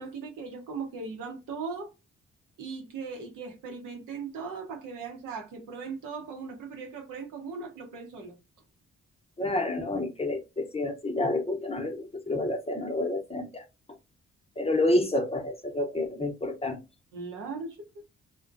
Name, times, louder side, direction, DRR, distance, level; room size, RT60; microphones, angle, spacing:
voice 1, 0.0-1.9 2.6-8.3 17.1-18.0, right 5 dB, 80° right, 0.8 m, -38 dB
voice 2, 9.4-13.5 14.6-16.8, left 2 dB, 20° left, 0.6 m, -29 dB
2.5 x 2.1 x 2.4 m
supercardioid pair, 50°, 31 cm